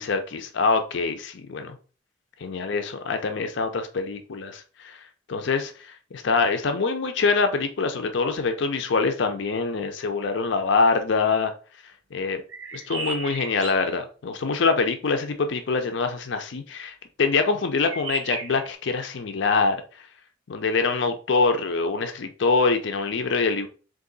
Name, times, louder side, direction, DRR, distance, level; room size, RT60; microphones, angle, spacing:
voice 1, 0.0-1.8 2.4-5.0 5.3-5.7 6.1-11.5 12.1-12.4 12.7-19.8 20.5-23.7, left 4 dB, 65° left, 7 dB, 0.5 m, -24 dB
sound 1, 12.5-13.9 17.8-18.7, right 3 dB, 85° right, 0.8 m, -34 dB
3.7 x 2.6 x 3.9 m, 0.36 s
head